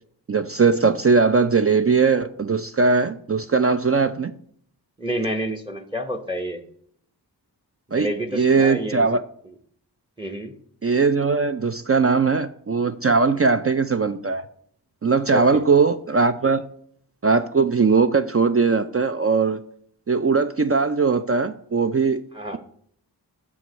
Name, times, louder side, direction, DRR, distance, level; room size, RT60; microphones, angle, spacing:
voice 1, 0.3-4.3 7.9-9.2 10.8-14.4 15.0-16.6 17.2-19.6 20.1-22.2, right 4 dB, 35° right, 9 dB, 0.4 m, -20 dB
voice 2, 5.0-6.6 7.9-9.1 10.2-10.5 15.3-15.6 22.3-22.6, right 1 dB, 10° right, 7 dB, 0.9 m, -28 dB
6.1 x 4.7 x 6.6 m, 0.63 s
wide cardioid pair, 45°, 41 cm